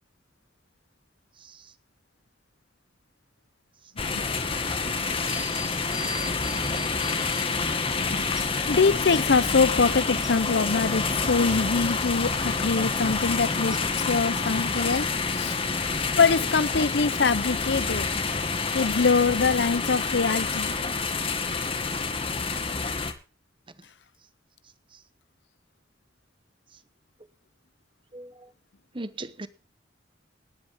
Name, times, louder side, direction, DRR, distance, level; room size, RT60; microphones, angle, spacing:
voice 1, 1.4-1.7 4.1-4.2 22.5-22.6 24.9-25.0 28.1-28.5 28.9-29.5, right 2 dB, 30° right, 1.0 m, -39 dB
sound 1, 4.0-23.1, left 4 dB, 30° left, 1.7 m, -28 dB
sound 2, 5.3-7.5 8.4-8.5 9.1-10.3 13.7-13.8, right 1 dB, 5° right, 1.6 m, -41 dB
voice 2, 8.7-15.6 16.2-18.1 18.7-20.8, left 4 dB, 75° left, 0.7 m, -24 dB
17.5 x 10.5 x 3.6 m
head